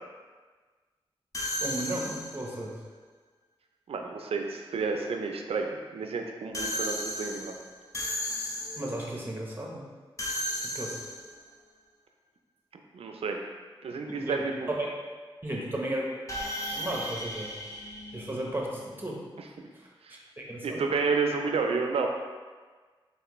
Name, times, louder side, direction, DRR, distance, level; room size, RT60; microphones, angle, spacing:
sound 1, 1.3-2.6 6.5-9.1 10.2-11.4 16.3-18.8, equal, 30° left, 0.7 m, -35 dB
voice 1, 1.6-2.8 8.8-9.8 10.6-11.0 14.1-14.9 15.4-16.1 16.7-17.5 18.1-19.2 19.7-19.9 20.4-20.8, right 1 dB, 20° right, -2 dB, 1.0 m, -34 dB
voice 2, 3.9-7.5 12.9-13.4 13.8-14.7 19.4-19.5 20.0-20.2 20.6-22.1, right 4 dB, 85° right, 3 dB, 0.4 m, -30 dB
4.1 x 3.3 x 3.0 m, 1.4 s
cardioid pair, 60°, 10 cm